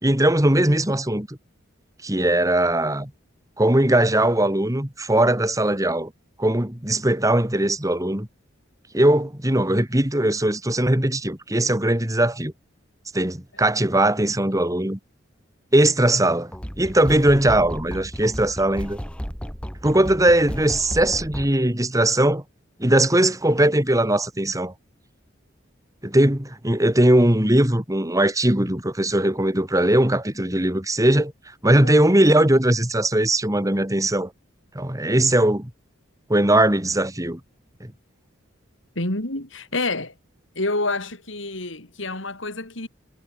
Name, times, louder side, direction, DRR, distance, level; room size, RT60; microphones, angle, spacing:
voice 1, 0.0-1.4 2.0-3.1 3.6-6.1 6.4-8.3 8.9-12.5 13.1-15.0 15.7-16.5 16.8-19.0 19.8-22.4 22.8-24.7 26.0-31.3 31.6-34.3 34.7-35.7 36.3-37.4, right 1 dB, 15° right, 2.5 m, -20 dB
sound 1, 16.5-21.5, equal, 5° left, 6.0 m, -33 dB
voice 2, 39.0-40.1 40.6-42.9, left 2 dB, 70° left, 5.5 m, -28 dB
head